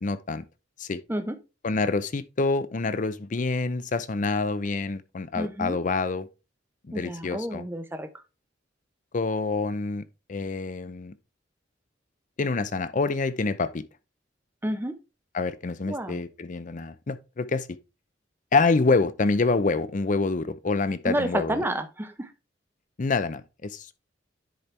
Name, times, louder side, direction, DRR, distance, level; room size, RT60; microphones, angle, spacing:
voice 1, 0.0-0.4 0.8-1.0 1.6-6.3 6.8-7.6 9.1-10.0 10.3-11.1 12.4-13.8 15.3-17.7 18.5-21.6 23.0-23.9, left 3 dB, 45° left, 0.6 m, -26 dB
voice 2, 5.3-5.8 6.9-8.1 14.6-14.9 15.9-16.2 21.0-22.3, right 1 dB, 10° right, 0.7 m, -30 dB
10.0 x 4.4 x 3.3 m
head